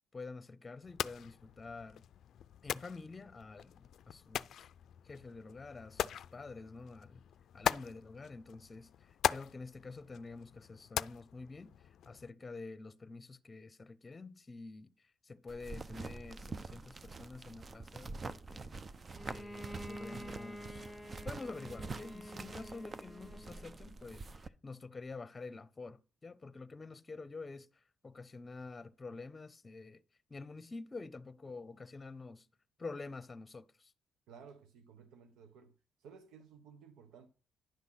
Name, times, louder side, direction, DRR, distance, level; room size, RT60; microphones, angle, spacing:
voice 1, 0.1-2.0 2.6-4.7 5.0-7.2 7.5-11.7 12.1-14.9 15.2-18.7 19.2-20.9 21.2-27.7 28.0-30.0 30.3-32.5 32.8-33.9, left 3 dB, 25° left, 0.8 m, -48 dB
sound 1, 0.8-12.3, left 10 dB, 70° left, 0.4 m, -41 dB
sound 2, 15.5-24.5, right 4 dB, 35° right, 0.6 m, -46 dB
Bowed string instrument, 19.1-23.8, equal, 5° left, 1.3 m, -48 dB
voice 2, 34.3-35.7 36.0-37.3, right 6 dB, 90° right, 0.9 m, -56 dB
10.5 x 6.2 x 5.7 m
cardioid pair, 90°, 0 cm